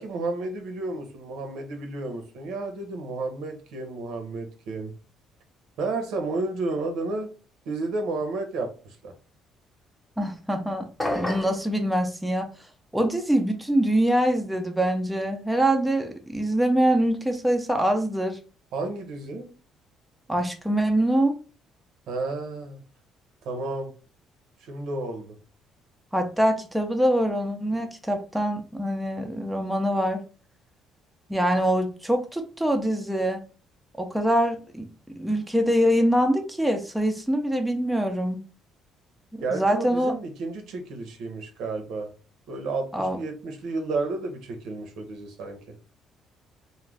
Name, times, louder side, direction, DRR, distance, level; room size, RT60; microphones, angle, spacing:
voice 1, 0.0-4.9 5.8-7.3 7.7-9.1 18.7-19.5 22.1-22.8 23.4-23.9 24.6-25.4 39.4-42.1 42.5-45.8, right 3 dB, 80° right, 5 dB, 0.7 m, -32 dB
voice 2, 10.2-10.9 11.1-12.5 12.9-18.4 20.3-21.4 26.1-30.2 31.3-33.4 34.0-34.9 35.2-38.4 39.3-40.1 42.9-43.2, right 1 dB, 5° right, 4 dB, 0.4 m, -24 dB
sound 1, 11.0-11.6, left 1 dB, 15° left, 0.9 m, -28 dB
2.4 x 2.2 x 3.2 m, 0.37 s
cardioid pair, 110°, 0 cm